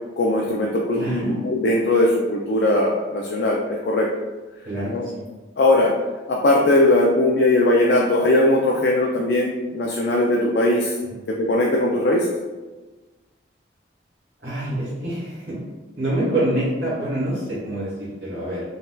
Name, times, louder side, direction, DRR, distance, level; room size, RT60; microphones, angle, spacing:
voice 1, 0.2-4.1 4.9-5.0 5.6-5.9 6.3-10.9 11.4-12.3, left 1 dB, 60° left, -1 dB, 0.3 m, -19 dB
voice 2, 0.9-1.4 4.6-5.2 11.0-11.2 14.4-15.6 16.0-18.6, right 1 dB, 60° right, -10 dB, 1.1 m, -26 dB
4.0 x 2.6 x 2.2 m, 1.2 s
head